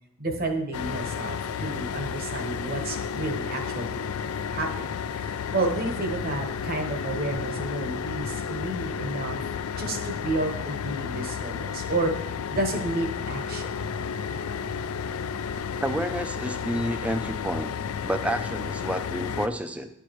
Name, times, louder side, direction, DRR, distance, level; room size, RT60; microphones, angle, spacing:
voice 1, 0.2-4.0 4.5-4.7 5.1-9.4 9.7-13.7, right 2 dB, 45° right, 3 dB, 1.0 m, -31 dB
sound 1, 0.7-19.5, left 6 dB, 85° left, 0.3 m, -32 dB
voice 2, 15.8-17.7 18.0-19.9, right 1 dB, 5° right, 8 dB, 0.4 m, -29 dB
11.5 x 4.7 x 3.0 m, 0.81 s
head